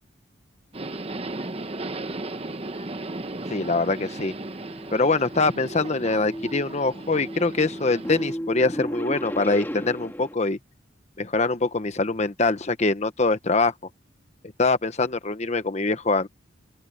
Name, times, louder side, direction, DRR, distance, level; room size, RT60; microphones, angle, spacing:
Subway metro underground, 0.7-8.3, right 2 dB, 30° right, 1.0 m, -36 dB
voice 1, 3.5-4.3 4.9-10.6 11.2-13.7 14.6-16.3, left 3 dB, 35° left, 1.0 m, -23 dB
sound 1, 3.5-10.3, equal, 10° left, 2.0 m, -36 dB
open air
head